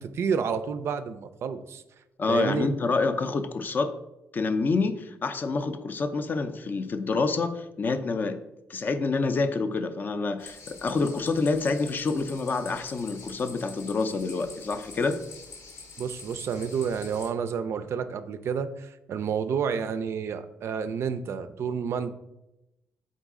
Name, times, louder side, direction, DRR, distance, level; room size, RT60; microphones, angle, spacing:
voice 1, 0.0-1.8 2.3-2.7 16.0-22.1, right 6 dB, 55° right, 11 dB, 0.3 m, -30 dB
voice 2, 2.2-3.9 4.3-8.4 8.7-15.2, left 3 dB, 35° left, 9 dB, 0.4 m, -27 dB
sound 1, 10.4-17.3, left 4 dB, 75° left, 0.8 m, -46 dB
4.0 x 3.7 x 3.6 m, 0.91 s
cardioid pair, 110°, 5 cm